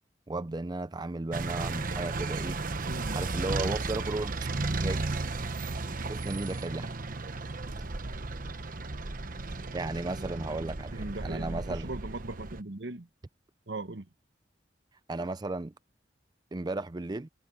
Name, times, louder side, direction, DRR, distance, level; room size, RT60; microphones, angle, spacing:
voice 1, 0.3-2.6 3.1-4.3 4.7-5.1 5.8-6.9 9.7-11.9 15.1-15.7 16.5-17.3, right 2 dB, 25° right, 0.5 m, -35 dB
sound 1, 1.3-12.6, right 3 dB, 50° right, 1.1 m, -34 dB
voice 2, 2.9-3.2 5.8-5.9 10.9-13.1 13.7-14.1, right 2 dB, 75° right, 1.2 m, -39 dB
head